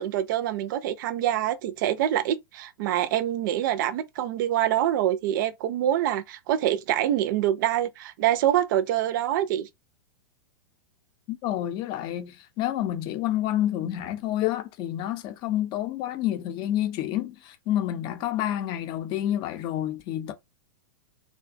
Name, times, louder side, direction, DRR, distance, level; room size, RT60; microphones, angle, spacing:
voice 1, 0.0-9.7, right 12 dB, 60° right, 0.4 m, -25 dB
voice 2, 11.3-20.3, left 12 dB, 40° left, 0.5 m, -29 dB
2.4 x 2.2 x 2.5 m
hypercardioid pair, 120°, 12 cm